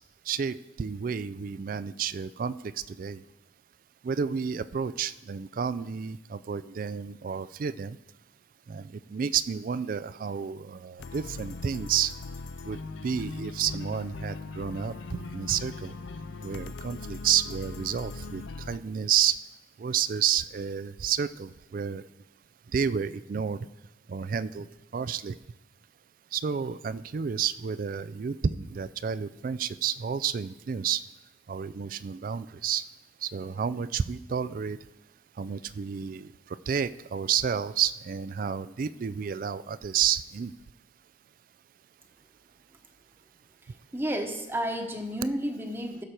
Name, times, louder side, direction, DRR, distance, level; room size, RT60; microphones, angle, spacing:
voice 1, 0.3-2.5 2.9-3.2 4.0-8.0 8.7-12.1 12.7-12.8 13.0-15.9 16.4-18.4 18.7-19.4 19.8-22.0 22.7-23.7 24.1-24.7 24.9-25.3 26.3-31.0 31.5-32.8 33.2-34.8 35.4-36.3 36.7-40.5, right 8 dB, 50° right, 17 dB, 0.3 m, -30 dB
sound 1, 11.0-18.8, left 3 dB, 85° left, 0.5 m, -40 dB
voice 2, 43.9-46.0, equal, 10° right, 4 dB, 1.0 m, -31 dB
15.5 x 6.7 x 4.4 m, 1.0 s
head